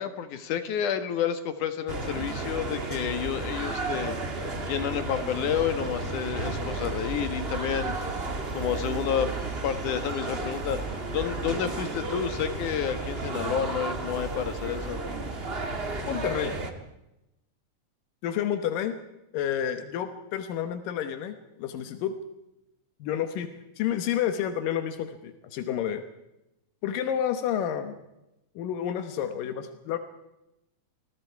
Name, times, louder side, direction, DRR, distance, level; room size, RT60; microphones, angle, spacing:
voice 1, 0.0-4.4 4.7-8.0 8.5-9.3 9.6-15.0, left 8 dB, 70° left, 10 dB, 2.9 m, -30 dB
sound 1, 1.9-16.7, right 3 dB, 25° right, 1.3 m, -33 dB
voice 2, 16.1-16.6 18.2-19.0 19.3-22.2 23.0-23.5 23.8-26.0 26.8-28.0 28.6-30.0, left 9 dB, 85° left, 8 dB, 2.9 m, -30 dB
28.0 x 21.0 x 4.7 m, 0.91 s
omnidirectional pair, 3.8 m